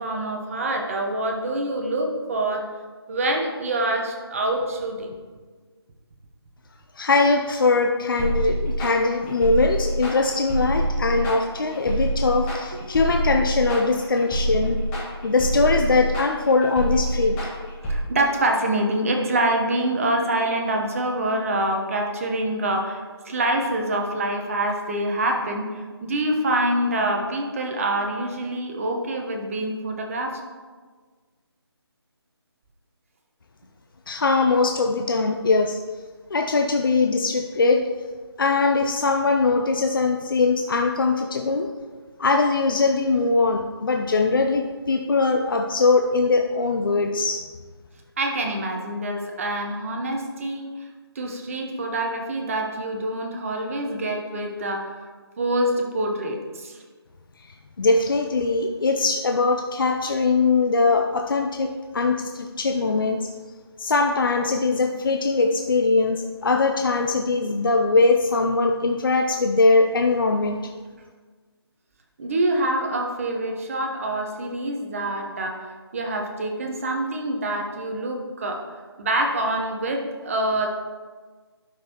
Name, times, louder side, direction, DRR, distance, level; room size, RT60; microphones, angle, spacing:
voice 1, 0.0-2.7 3.1-5.1 17.9-30.4 48.2-50.7 51.1-55.0 55.4-56.8 72.2-78.6 79.0-80.7, right 1 dB, 30° right, 2 dB, 1.0 m, -26 dB
voice 2, 7.0-14.8 15.2-17.4 34.1-35.8 36.3-37.8 38.4-41.7 42.2-47.4 57.8-63.3 63.8-70.6, left 3 dB, 55° left, 3 dB, 0.5 m, -21 dB
sound 1, 8.2-18.0, right 1 dB, 15° left, 1.9 m, -26 dB
12.0 x 5.3 x 2.9 m, 1.5 s
figure-of-eight pair, 155°, 14 cm